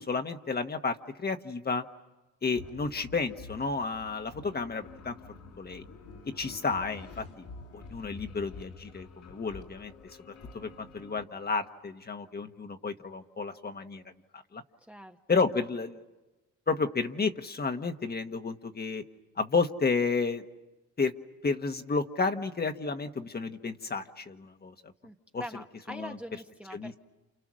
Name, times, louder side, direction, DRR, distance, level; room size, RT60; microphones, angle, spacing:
voice 1, 0.0-1.8 2.4-5.1 5.6-5.8 6.4-7.4 7.7-9.9 10.5-14.0 14.3-14.6 15.3-16.0 16.7-19.0 19.4-20.4 21.0-21.1 21.4-24.7 25.3-25.4 25.9-26.2 26.7-27.0, left 4 dB, 30° left, 6 dB, 1.4 m, -31 dB
sound 1, 2.6-11.2, left 4 dB, 80° left, 4.1 m, -48 dB
voice 2, 14.9-15.2 25.0-27.0, equal, 5° right, 4 dB, 1.2 m, -43 dB
29.5 x 28.5 x 6.4 m, 1.1 s
cardioid pair, 90°, 30 cm